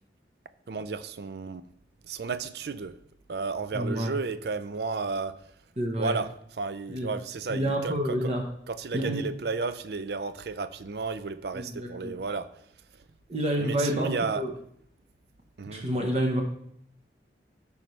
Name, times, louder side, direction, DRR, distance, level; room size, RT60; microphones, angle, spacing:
voice 1, 0.7-1.6 2.0-2.9 3.3-5.4 6.0-6.3 6.6-8.3 8.7-12.5 13.6-14.4 15.6-15.8, right 4 dB, 65° right, 13 dB, 0.5 m, -32 dB
voice 2, 3.7-4.2 5.8-6.2 6.9-7.1 7.5-8.4 8.9-9.3 11.5-12.2 13.3-14.5 15.7-16.4, equal, 35° right, 2 dB, 1.0 m, -28 dB
13.5 x 5.5 x 3.2 m, 0.70 s
head